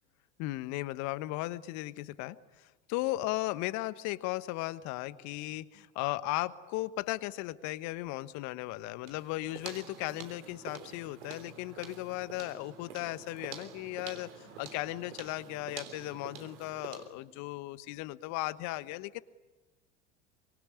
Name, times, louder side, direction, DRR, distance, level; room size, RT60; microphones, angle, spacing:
voice 1, 0.4-19.2, left 18 dB, 50° left, 15 dB, 1.3 m, -36 dB
sound 1, 9.0-17.2, right 7 dB, 70° right, 3.5 m, -48 dB
25.0 x 24.0 x 9.8 m, 1.1 s
hypercardioid pair, 80°, 35 cm